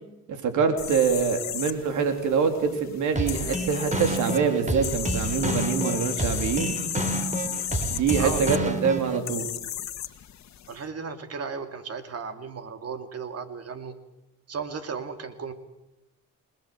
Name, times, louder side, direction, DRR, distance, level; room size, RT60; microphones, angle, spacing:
voice 1, 0.3-6.7 7.9-9.5, right 6 dB, 75° right, 6 dB, 3.5 m, -25 dB
sound 1, 0.8-10.8, left 11 dB, 65° left, 1.7 m, -35 dB
sound 2, 3.2-9.2, right 1 dB, 25° right, 3.9 m, -29 dB
voice 2, 8.2-8.5 10.7-14.0 14.5-15.5, right 5 dB, 55° right, 8 dB, 2.6 m, -35 dB
27.0 x 19.5 x 7.9 m, 0.91 s
cardioid pair, 90°, 30 cm